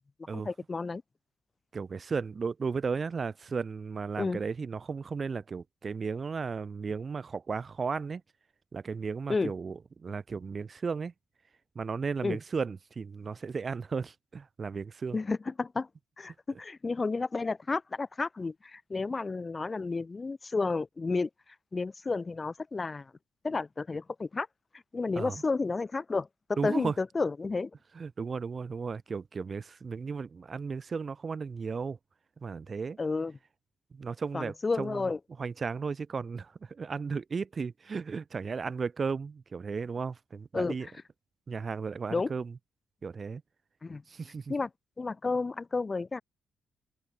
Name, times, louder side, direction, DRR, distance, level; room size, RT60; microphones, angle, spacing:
voice 1, 0.4-1.0 4.2-4.4 9.3-9.5 12.2-12.4 15.1-15.9 16.2-21.3 21.7-23.1 23.4-24.5 24.9-26.3 26.6-27.7 33.0-33.3 34.3-35.2 40.5-40.8 42.1-42.3 43.8-44.0 44.5-44.7 45.0-46.2, left 3 dB, 30° left, 1.8 m, -31 dB
voice 2, 1.7-8.2 8.7-11.1 11.7-15.2 25.1-25.4 26.6-26.9 27.9-32.0 32.4-33.0 33.9-35.1 35.4-40.9 41.5-42.5 43.0-43.4 44.1-44.5, right 5 dB, 45° right, 4.9 m, -35 dB
open air
supercardioid pair, 60°, 0 cm